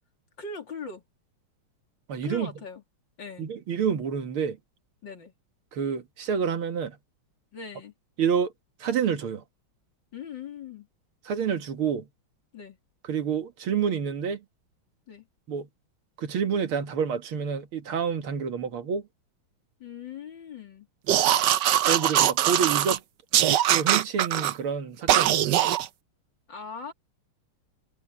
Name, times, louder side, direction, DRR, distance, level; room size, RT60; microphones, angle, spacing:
voice 1, 0.4-1.0 2.2-2.8 3.2-3.5 5.0-5.3 7.5-7.9 10.1-10.9 12.5-12.8 15.1-15.3 19.8-20.9 26.5-26.9, left 5 dB, 60° left, 3.5 m, -40 dB
voice 2, 2.1-2.5 3.4-4.6 5.7-7.0 8.2-8.5 8.8-9.4 11.3-12.1 13.1-14.4 15.5-15.7 16.2-19.0 21.9-23.0 23.7-25.6, right 7 dB, 85° right, 2.5 m, -28 dB
sound 1, 21.1-23.0 23.3-24.5 25.1-25.9, right 11 dB, 65° right, 1.3 m, -22 dB
omnidirectional pair, 2.3 m